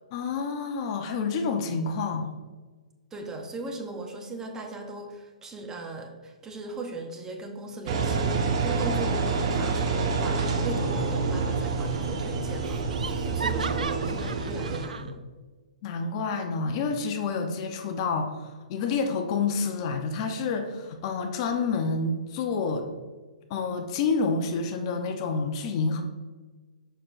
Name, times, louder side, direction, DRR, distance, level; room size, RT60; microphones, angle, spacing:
voice 1, 0.1-2.3 15.8-22.9 23.5-26.0, left 4 dB, 40° left, 5 dB, 0.7 m, -28 dB
voice 2, 3.1-15.2, right 2 dB, 15° right, 2 dB, 0.8 m, -38 dB
Engine, 7.9-14.9, right 4 dB, 50° right, 1.0 m, -27 dB
Laughter, 11.3-11.9 12.1-12.2 12.6-15.1, right 5 dB, 85° right, 0.4 m, -37 dB
6.7 x 6.1 x 2.5 m, 1.4 s
hypercardioid pair, 140°, 4 cm